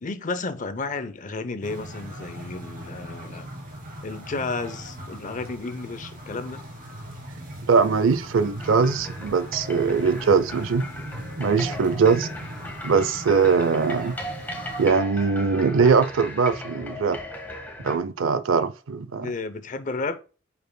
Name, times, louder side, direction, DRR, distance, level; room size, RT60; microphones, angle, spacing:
voice 1, 0.0-3.5 4.0-6.6 19.2-20.2, left 3 dB, 40° left, 0.6 m, -32 dB
sound 1, 1.6-14.9, equal, 45° right, 2.7 m, -39 dB
voice 2, 7.7-10.9 11.4-12.3 12.8-14.2 14.8-17.2 17.8-19.3, right 5 dB, 75° right, 0.5 m, -21 dB
sound 2, 8.6-18.0, left 1 dB, 10° left, 1.4 m, -37 dB
8.8 x 5.5 x 2.2 m
head